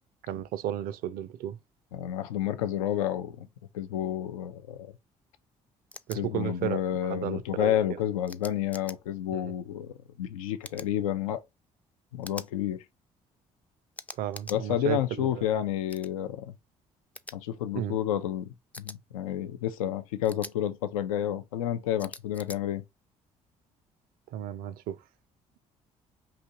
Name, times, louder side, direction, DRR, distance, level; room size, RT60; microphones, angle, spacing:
voice 1, 0.2-1.6 6.1-7.8 9.3-9.5 14.2-15.5 17.7-18.0 24.3-25.0, right 11 dB, 60° right, 0.5 m, -33 dB
voice 2, 1.9-3.5 3.7-4.9 6.2-11.4 12.1-12.8 14.5-16.5 17.3-22.8, left 11 dB, 80° left, 0.4 m, -30 dB
sound 1, 5.9-6.2 8.3-9.0 10.6-10.9 12.2-12.5 14.0-14.6 15.9-16.1 17.2-17.4 18.7-19.0 20.2-20.5 22.0-22.6, left 2 dB, 10° left, 0.4 m, -43 dB
4.9 x 2.8 x 2.6 m
figure-of-eight pair, 50°, 17 cm